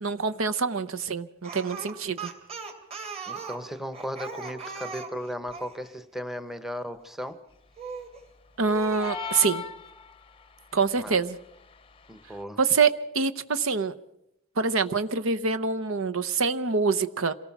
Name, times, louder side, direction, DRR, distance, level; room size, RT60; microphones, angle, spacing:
voice 1, 0.0-2.3 8.6-9.6 10.7-11.4 12.6-13.9 14.6-17.3, right 4 dB, 70° right, 11 dB, 0.9 m, -25 dB
Speech, 1.4-5.7 7.8-8.2 8.7-9.5, right 5 dB, 30° right, 3.0 m, -39 dB
voice 2, 3.3-7.4 10.9-11.2 12.1-12.6, equal, ahead, 11 dB, 1.0 m, -36 dB
sound 1, 9.0-10.5, left 7 dB, 25° left, 0.7 m, -36 dB
27.0 x 18.5 x 6.0 m, 0.79 s
head